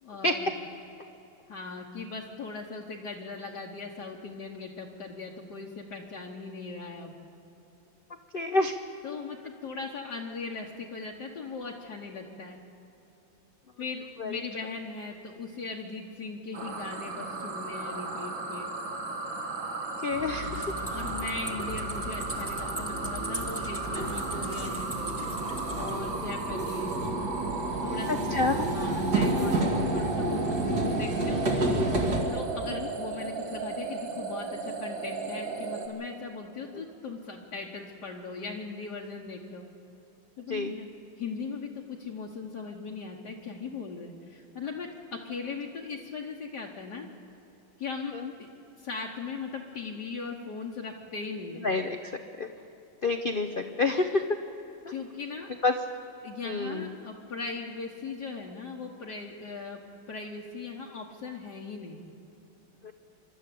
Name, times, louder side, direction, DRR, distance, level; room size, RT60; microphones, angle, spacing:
voice 1, 0.0-0.5 1.5-7.1 9.0-12.6 13.8-18.7 20.4-24.9 25.7-26.9 27.8-31.5 32.3-39.7 40.4-40.9 41.2-47.1 47.8-48.5 48.8-51.6 54.9-55.5 56.2-59.8 60.1-62.0, left 4 dB, 60° left, -1 dB, 1.7 m, -39 dB
voice 2, 8.1-8.8 14.2-14.4 20.0-20.6 28.1-28.7 32.7-32.9 36.7-36.8 40.5-40.7 48.1-48.3 51.6-52.5 53.0-54.4 54.8-54.9 55.6-55.7 56.4-57.0 62.8-62.9, left 3 dB, 80° left, 7 dB, 0.4 m, -29 dB
sound 1, 16.5-35.9, right 3 dB, 75° right, 2.5 m, -35 dB
sound 2, 20.1-32.2, right 1 dB, 55° right, 2.9 m, -31 dB
sound 3, 20.5-26.0, right 1 dB, 10° right, 1.1 m, -41 dB
25.0 x 12.5 x 8.5 m, 3.0 s
omnidirectional pair, 2.1 m